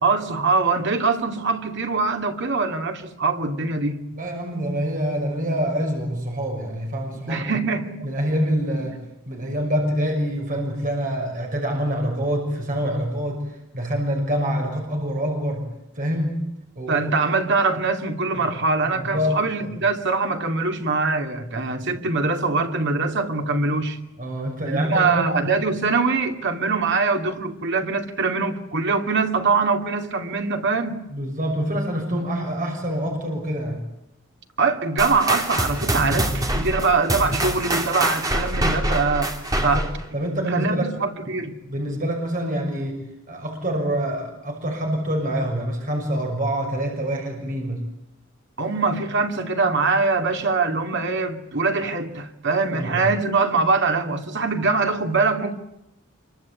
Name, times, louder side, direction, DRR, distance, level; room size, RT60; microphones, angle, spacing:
voice 1, 0.0-4.0 7.3-8.0 16.9-24.0 24.6-31.0 34.6-39.3 39.6-39.9 40.5-41.6 48.6-55.5, right 4 dB, 55° right, 2.7 m, -23 dB
voice 2, 4.1-7.7 8.0-15.7 15.9-16.5 16.7-17.1 18.9-19.7 24.2-25.3 31.1-33.8 39.6-39.8 40.1-40.9 41.3-41.4 41.6-43.0 43.3-47.8 52.7-53.1, equal, 40° right, 6.1 m, -26 dB
sound 1, 35.0-40.1, right 1 dB, 15° right, 3.1 m, -25 dB
27.0 x 24.0 x 8.5 m
head